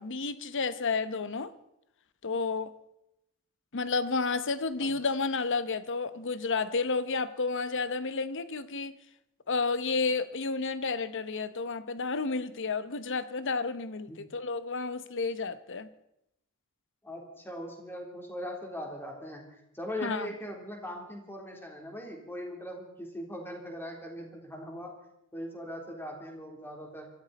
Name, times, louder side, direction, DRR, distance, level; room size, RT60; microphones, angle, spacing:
voice 1, 0.0-1.5 2.2-2.7 3.7-9.0 9.5-15.9 20.0-20.3, left 4 dB, 60° left, 0.9 m, -31 dB
voice 2, 17.0-24.9 25.3-27.1, equal, 10° left, 3.4 m, -40 dB
24.5 x 13.5 x 4.2 m
head